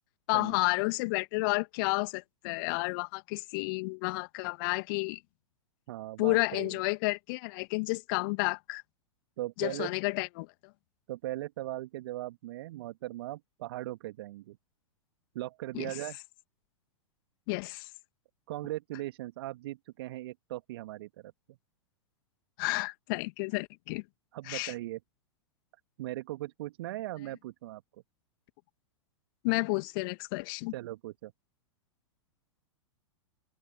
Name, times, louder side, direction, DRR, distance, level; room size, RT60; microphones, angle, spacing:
voice 1, 0.3-5.2 6.2-8.8 9.6-10.5 15.7-15.9 17.5-17.9 22.6-24.0 24.5-24.7 29.4-30.7, left 28 dB, 45° left, 2.5 m, -31 dB
voice 2, 5.9-6.8 9.4-9.9 11.1-14.6 15.3-16.2 18.5-21.6 24.3-25.0 26.0-27.8 30.7-31.3, right 16 dB, 50° right, 2.0 m, -39 dB
open air
figure-of-eight pair, 100°, 16 cm